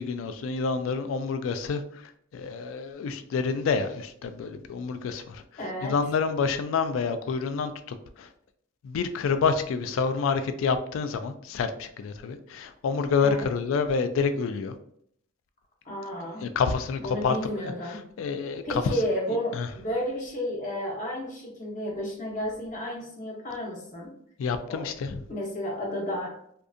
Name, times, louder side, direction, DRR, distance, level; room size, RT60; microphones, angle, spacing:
voice 1, 0.0-2.0 2.3-5.4 5.8-8.3 8.8-14.7 16.4-18.8 19.5-19.7 24.4-25.2, left 5 dB, 75° left, 9 dB, 0.3 m, -28 dB
voice 2, 5.6-5.9 13.2-13.5 15.8-16.5 17.0-18.0 18.6-24.1 24.7-24.9 25.3-26.4, equal, 40° left, -1 dB, 0.6 m, -32 dB
2.6 x 2.4 x 2.4 m, 0.68 s
head